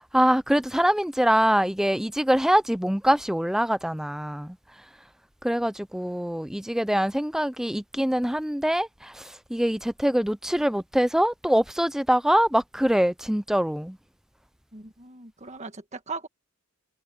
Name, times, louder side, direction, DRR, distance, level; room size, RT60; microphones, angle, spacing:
voice 1, 0.0-4.6 5.4-14.0, equal, ahead, 0.4 m, -24 dB
voice 2, 14.7-16.3, right 3 dB, 30° right, 1.5 m, -38 dB
head